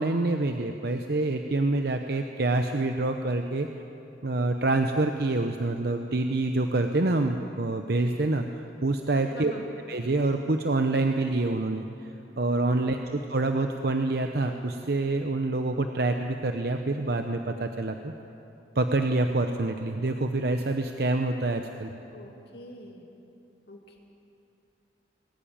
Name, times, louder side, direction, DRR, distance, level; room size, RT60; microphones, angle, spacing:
voice 1, 0.0-3.7 4.2-9.5 9.9-12.1 12.4-18.1 18.8-21.9, right 2 dB, 60° right, 5 dB, 0.8 m, -26 dB
voice 2, 9.3-9.7 12.7-12.9 22.1-23.1 23.7-24.0, equal, 60° left, 1 dB, 2.5 m, -44 dB
21.0 x 14.5 x 8.8 m, 2.9 s
head